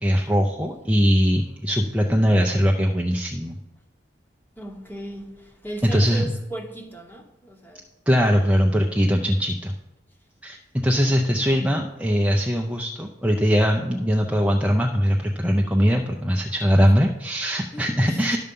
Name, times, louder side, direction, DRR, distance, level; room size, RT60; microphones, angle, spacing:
voice 1, 0.0-3.6 5.8-6.2 8.1-9.7 10.4-18.4, equal, 5° right, 0.5 m, -21 dB
voice 2, 4.6-7.9 8.3-8.5 9.0-9.3 10.9-11.2 16.8-16.9 17.7-18.4, right 1 dB, 10° left, 0.9 m, -38 dB
11.0 x 6.7 x 5.3 m
head